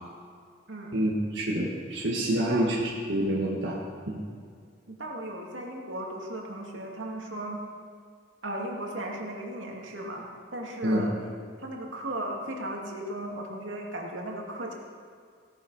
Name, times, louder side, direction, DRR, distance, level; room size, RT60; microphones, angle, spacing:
voice 1, 0.9-3.8 4.1-4.2 10.8-11.1, right 1 dB, 70° right, -4 dB, 1.8 m, -27 dB
voice 2, 2.4-2.7 4.9-7.6 8.4-11.2 11.6-14.7, right 1 dB, 85° right, 0 dB, 2.4 m, -36 dB
17.0 x 11.0 x 5.5 m, 2.1 s
head